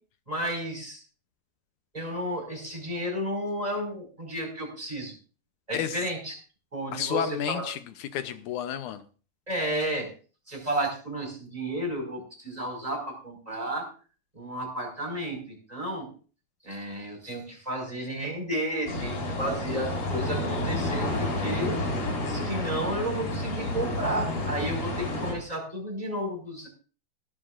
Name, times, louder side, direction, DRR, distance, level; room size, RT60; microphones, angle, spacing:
voice 1, 0.3-1.0 1.9-5.1 5.7-6.3 6.7-7.7 9.5-10.1 10.5-13.9 14.3-16.1 16.6-21.8 22.3-26.7, right 1 dB, 10° right, 1 dB, 5.0 m, -32 dB
voice 2, 5.7-6.1 6.9-9.0, left 9 dB, 75° left, 10 dB, 1.9 m, -31 dB
sound 1, 18.9-25.3, left 1 dB, 55° left, 5.2 m, -30 dB
17.5 x 14.0 x 2.5 m, 0.38 s
omnidirectional pair, 4.3 m